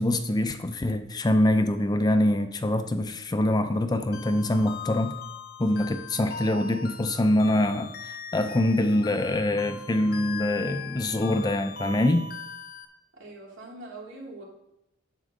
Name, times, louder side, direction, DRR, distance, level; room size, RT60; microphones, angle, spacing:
voice 1, 0.0-5.1 5.6-12.3, left 1 dB, 20° left, 9 dB, 0.5 m, -24 dB
sound 1, 4.1-12.9, left 6 dB, 50° left, 0.8 m, -40 dB
voice 2, 13.1-14.4, right 2 dB, 70° right, -3 dB, 2.9 m, -42 dB
10.0 x 7.4 x 3.7 m, 0.83 s
head